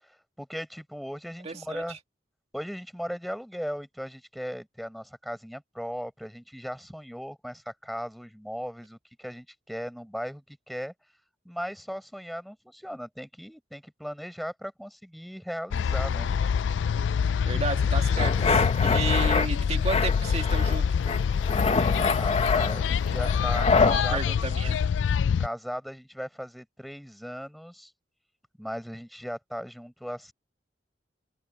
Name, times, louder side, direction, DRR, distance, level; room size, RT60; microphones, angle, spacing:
voice 1, 0.0-2.0 2.5-10.9 11.4-16.4 22.1-24.4 25.4-27.9 28.6-30.3, equal, ahead, 7.2 m, -37 dB
voice 2, 1.4-1.8 17.4-18.4 18.8-20.9 23.9-24.8, right 3 dB, 35° right, 2.1 m, -32 dB
sound 1, 15.7-25.5, left 6 dB, 85° left, 0.3 m, -25 dB
sound 2, 18.2-19.5 19.9-20.8 21.0-24.0, left 4 dB, 35° left, 0.9 m, -25 dB
head